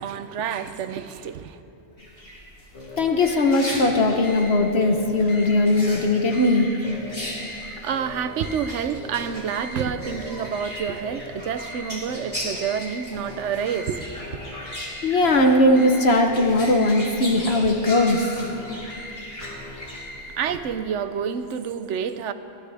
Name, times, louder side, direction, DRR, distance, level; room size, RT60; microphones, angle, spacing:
voice 1, 0.0-1.6 7.5-14.6 20.4-22.3, right 7 dB, 85° right, 1.0 m, -29 dB
sound 1, 2.0-20.7, equal, 30° left, 3.0 m, -39 dB
sound 2, 2.7-20.6, left 1 dB, 80° left, 1.9 m, -39 dB
voice 2, 3.0-6.7 15.0-18.3, left 2 dB, 65° left, 1.2 m, -19 dB
23.0 x 15.5 x 3.4 m
omnidirectional pair, 1.2 m